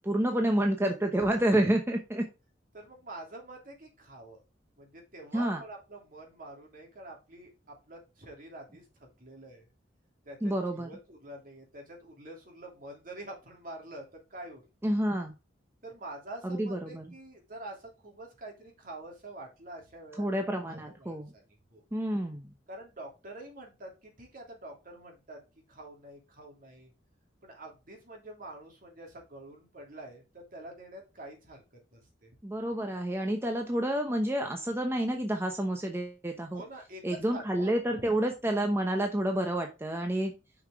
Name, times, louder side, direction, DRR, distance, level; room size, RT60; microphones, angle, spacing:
voice 1, 0.0-2.3 5.3-5.6 10.4-10.9 14.8-15.3 16.4-17.0 20.2-21.3 21.9-22.5 32.4-36.6 37.0-40.3, right 1 dB, 15° right, 3 dB, 0.8 m, -29 dB
voice 2, 2.7-4.4 4.8-9.7 10.2-14.9 15.8-21.8 22.7-25.4 25.7-26.9 27.4-31.6 31.9-32.3 36.5-37.7 38.0-38.1, right 1 dB, 50° right, 0 dB, 2.9 m, -46 dB
6.5 x 5.7 x 3.6 m, 0.28 s
head